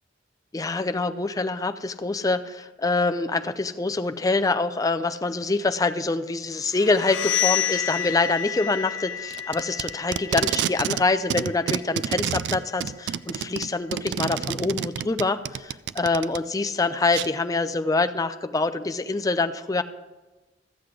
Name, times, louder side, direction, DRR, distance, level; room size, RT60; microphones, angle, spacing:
voice 1, 0.5-19.8, left 3 dB, 20° left, 9 dB, 0.4 m, -25 dB
sound 1, 6.7-12.4, left 10 dB, 90° left, 0.4 m, -30 dB
Packing tape duct tape, 9.3-11.0 11.3-16.4 17.1-17.3, right 9 dB, 70° right, 0.3 m, -28 dB
13.5 x 7.8 x 4.9 m, 1.2 s
head